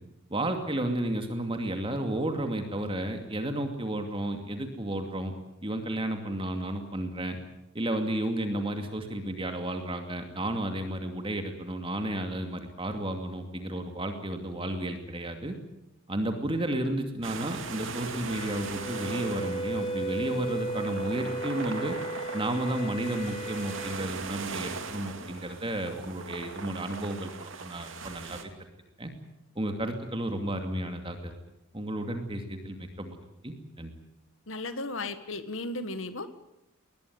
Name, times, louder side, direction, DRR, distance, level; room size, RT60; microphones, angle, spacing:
voice 1, 0.3-5.3 5.6-7.4 7.7-15.5 16.1-22.0 22.3-28.4 29.0-29.1 29.6-31.3 31.7-33.2 33.4-33.9, right 1 dB, 25° right, 5 dB, 2.5 m, -32 dB
sound 1, 17.2-28.4, right 4 dB, 60° right, 2.6 m, -40 dB
Wind instrument woodwind instrument, 18.3-24.0, right 2 dB, 25° left, 2.4 m, -35 dB
voice 2, 34.5-36.3, left 2 dB, 65° left, 11 dB, 1.6 m, -35 dB
21.0 x 20.5 x 9.5 m, 0.84 s
head